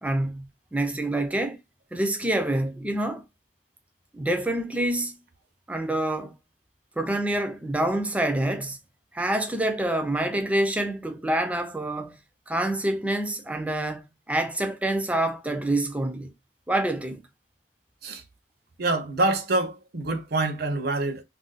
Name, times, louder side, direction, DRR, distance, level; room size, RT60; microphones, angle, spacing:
voice 1, 0.0-1.6 1.9-3.2 4.1-5.2 5.7-6.3 7.0-8.8 9.1-12.2 12.5-16.3 16.7-17.2, right 1 dB, 5° right, 0.4 m, -27 dB
voice 2, 18.8-21.2, right 2 dB, 55° right, 0.6 m, -26 dB
2.5 x 2.2 x 3.8 m
head